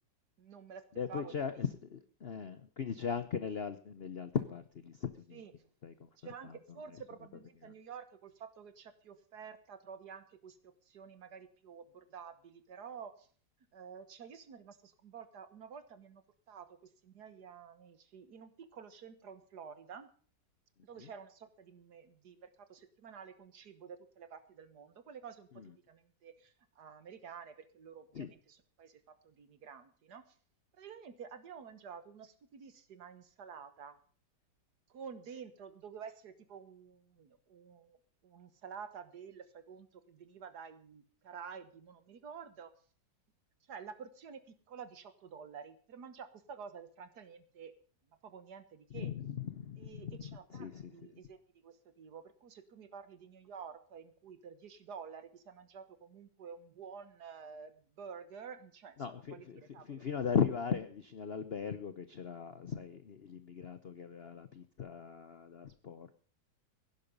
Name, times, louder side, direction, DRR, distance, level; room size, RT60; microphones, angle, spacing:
voice 1, 0.4-1.6 5.3-5.7 6.2-13.3 13.7-20.1 20.8-30.4 30.7-34.0 34.9-38.0 38.2-42.7 43.7-47.7 48.2-49.1 49.8-60.0, right 6 dB, 60° right, 12 dB, 1.7 m, -50 dB
voice 2, 1.0-5.4 5.8-6.1 28.1-28.3 48.9-50.9 59.0-59.6 59.8-66.1, left 7 dB, 60° left, 11 dB, 0.6 m, -38 dB
16.5 x 11.0 x 5.3 m, 0.43 s
omnidirectional pair, 2.1 m